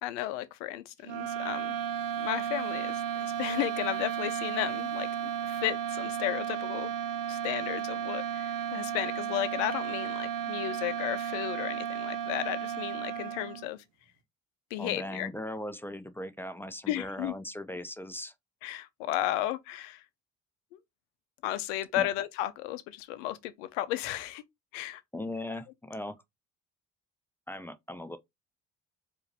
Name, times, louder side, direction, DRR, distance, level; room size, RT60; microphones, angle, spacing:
voice 1, 0.0-1.8 2.2-5.1 5.5-6.9 7.3-13.8 14.7-15.3 16.9-17.3 18.6-20.0 21.4-24.4 24.7-25.0, left 14 dB, 80° left, 0.6 m, -34 dB
sound 1, 1.0-13.7, right 9 dB, 75° right, 0.9 m, -34 dB
voice 2, 14.8-18.3 22.0-22.1 25.1-26.2 27.5-28.2, left 1 dB, 5° left, 0.6 m, -38 dB
4.6 x 2.7 x 3.3 m
hypercardioid pair, 55°, 37 cm